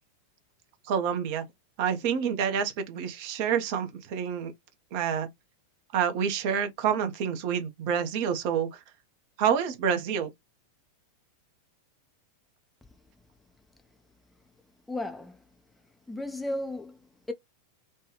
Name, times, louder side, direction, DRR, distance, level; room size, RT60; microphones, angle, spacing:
voice 1, 0.9-1.4 1.8-4.5 4.9-5.3 5.9-8.8 9.4-10.3, right 7 dB, 45° right, 0.7 m, -28 dB
voice 2, 14.9-15.4 16.1-17.0 17.3-17.4, left 1 dB, 5° left, 0.4 m, -34 dB
3.1 x 2.2 x 3.1 m
figure-of-eight pair, 90°, 0 cm